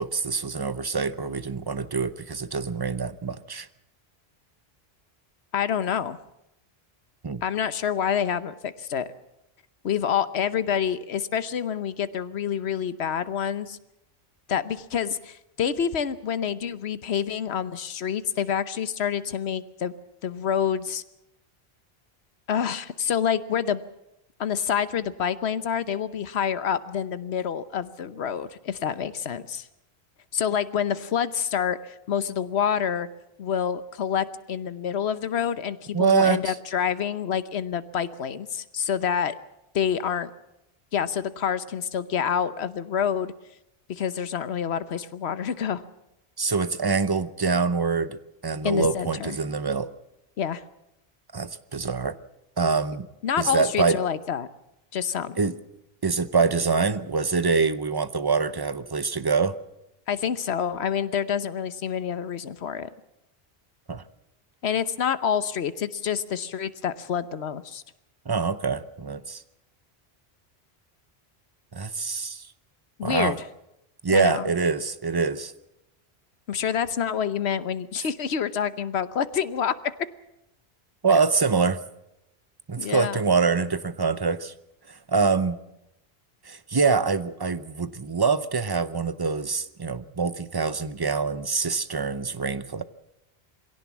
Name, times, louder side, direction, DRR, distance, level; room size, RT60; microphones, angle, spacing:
voice 1, 0.0-3.7 7.2-7.4 35.9-36.5 46.4-49.9 51.3-52.2 52.6-53.1 53.4-54.0 55.4-55.6 56.0-59.6 63.9-64.0 68.3-69.4 71.7-72.5 73.0-73.4 74.0-75.5 81.0-81.8 82.7-84.5 84.9-85.6 86.5-92.8, right 4 dB, 25° right, 14 dB, 0.7 m, -25 dB
voice 2, 5.5-6.2 7.4-9.1 9.8-13.8 14.5-19.9 20.2-21.0 22.5-23.8 24.4-29.7 30.3-33.1 33.4-39.3 39.7-40.3 40.9-43.3 43.9-45.8 48.6-49.4 50.4-50.6 53.2-54.5 54.9-55.4 60.1-62.9 64.6-67.8 73.0-73.4 74.1-74.5 76.5-79.7 82.8-83.2, left 8 dB, 85° left, 14 dB, 1.2 m, -27 dB
22.5 x 17.0 x 7.3 m, 0.85 s
omnidirectional pair, 1.1 m